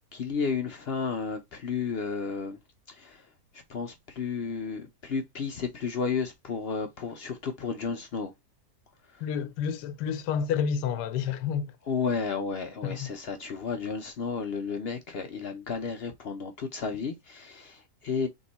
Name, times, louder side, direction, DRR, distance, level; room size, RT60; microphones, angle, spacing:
voice 1, 0.0-2.6 2.9-3.3 3.5-8.3 9.1-9.2 11.9-18.3, left 5 dB, 70° left, 0.6 m, -32 dB
voice 2, 9.2-11.7 12.8-13.1, left 7 dB, 85° left, 1.2 m, -29 dB
3.6 x 3.1 x 4.0 m
omnidirectional pair, 1.8 m